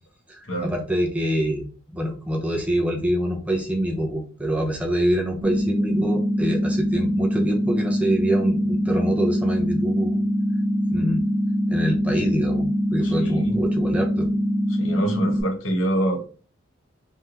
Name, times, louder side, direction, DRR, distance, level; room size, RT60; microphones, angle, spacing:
voice 1, 0.3-10.2 10.9-11.2 11.7-12.7 12.9-14.3, right 1 dB, 5° right, 0 dB, 0.5 m, -25 dB
sound 1, 5.4-15.4, equal, 70° right, 0.8 m, -23 dB
voice 2, 13.0-13.6 14.8-16.3, right 1 dB, 90° left, 2 dB, 0.9 m, -25 dB
3.2 x 2.5 x 2.8 m, 0.37 s
head